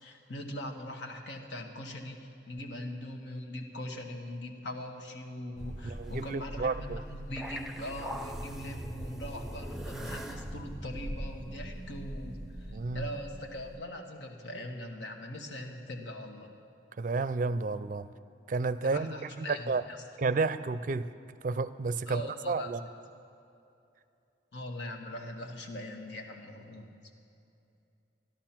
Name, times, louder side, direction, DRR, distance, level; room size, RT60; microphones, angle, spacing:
voice 1, 0.0-16.5 17.4-17.5 18.8-20.0 22.1-22.9 24.5-26.9, left 1 dB, 85° left, 3 dB, 1.5 m, -41 dB
sound 1, 5.6-13.8, equal, ahead, 0.5 m, -41 dB
voice 2, 5.8-7.0 12.7-13.1 17.0-18.1 18.5-19.8 20.2-21.1 21.4-22.2 22.5-22.8, right 3 dB, 50° right, 14 dB, 0.4 m, -31 dB
13.0 x 12.5 x 5.9 m, 2.7 s
head